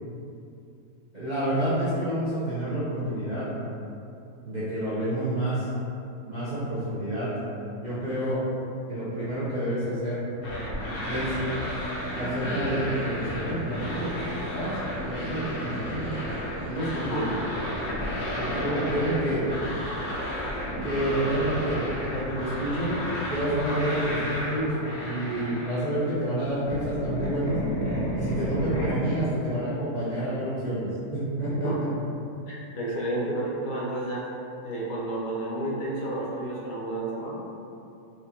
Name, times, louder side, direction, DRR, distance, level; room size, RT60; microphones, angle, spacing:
voice 1, 1.1-3.5 4.4-5.6 6.2-7.3 7.8-8.4 8.9-10.2 11.1-11.3 12.1-14.2 14.5-14.7 15.1-16.1 16.7-17.3 18.4-19.4 20.8-21.8 22.1-23.0 23.3-24.7 25.0-27.6 28.1-31.9, right 1 dB, 45° right, -12 dB, 0.5 m, -29 dB
sound 1, 10.4-26.1 26.4-28.9, equal, 60° left, 0.6 m, -32 dB
Snare drum, 11.0-17.1, equal, 70° right, 1.3 m, -41 dB
voice 2, 32.5-34.3 34.6-37.4, right 1 dB, 85° left, -4 dB, 1.4 m, -31 dB
4.6 x 2.4 x 2.8 m, 2.7 s
omnidirectional pair, 1.8 m